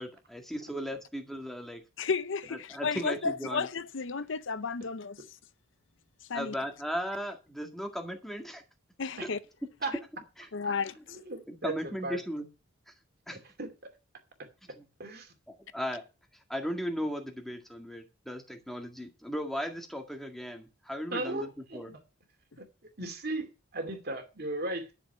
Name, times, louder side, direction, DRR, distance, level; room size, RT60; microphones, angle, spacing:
voice 1, 0.0-1.8 2.5-3.7 6.3-8.6 9.2-9.3 10.4-10.5 11.5-12.5 12.9-13.0 13.3-13.4 14.8-14.9 15.7-16.0 16.5-21.9, equal, ahead, 1.9 m, -36 dB
voice 2, 2.0-5.2 6.3-6.5 9.0-9.4 10.5-11.2, left 5 dB, 65° left, 0.6 m, -33 dB
voice 3, 11.1-12.2 13.6-13.9 15.0-15.3 21.1-22.0 22.6-22.7 23.0-24.9, right 2 dB, 50° right, 2.4 m, -36 dB
11.0 x 6.9 x 6.5 m
head